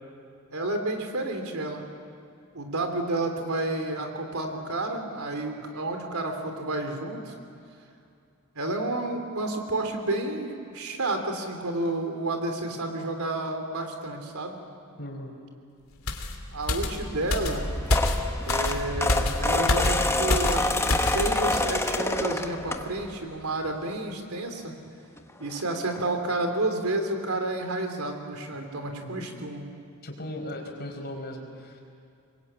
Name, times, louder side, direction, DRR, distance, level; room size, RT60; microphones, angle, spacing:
voice 1, 0.5-1.8 2.5-7.3 8.5-14.6 16.5-17.6 18.4-24.7 25.4-29.7, right 2 dB, 85° right, 5 dB, 3.2 m, -30 dB
voice 2, 15.0-15.3 28.9-29.3 30.0-31.8, left 1 dB, 50° left, 2 dB, 4.7 m, -38 dB
sound 1, 16.1-21.2 21.5-21.7, left 1 dB, 70° left, 2.8 m, -27 dB
sound 2, 17.6-23.2 23.7-23.9 25.2-25.3 25.5-25.6 25.9-26.1, left 2 dB, 10° left, 1.0 m, -27 dB
25.5 x 22.0 x 8.8 m, 2.5 s
head